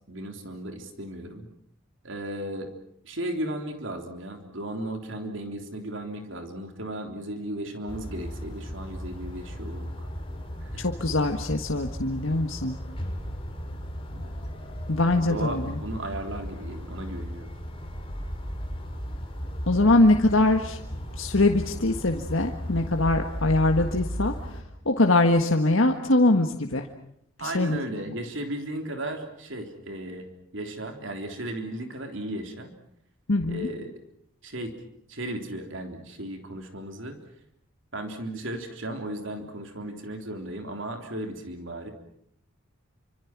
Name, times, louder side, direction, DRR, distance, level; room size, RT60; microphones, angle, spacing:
voice 1, 0.1-1.5 2.0-2.7 3.0-10.1 10.6-10.9 14.1-14.3 15.0-17.5 27.4-30.3 30.5-32.7 33.4-33.9 34.4-34.7 35.1-37.2 37.9-41.9, right 1 dB, 65° right, 5 dB, 3.6 m, -35 dB
sound 1, 7.9-24.6, equal, 25° left, 4.4 m, -36 dB
voice 2, 10.8-12.8 14.9-15.8 19.7-20.8 21.2-24.3 24.8-26.8 27.5-27.8 33.3-33.7, left 2 dB, 70° left, 4 dB, 1.7 m, -22 dB
29.0 x 26.0 x 6.1 m, 0.71 s
head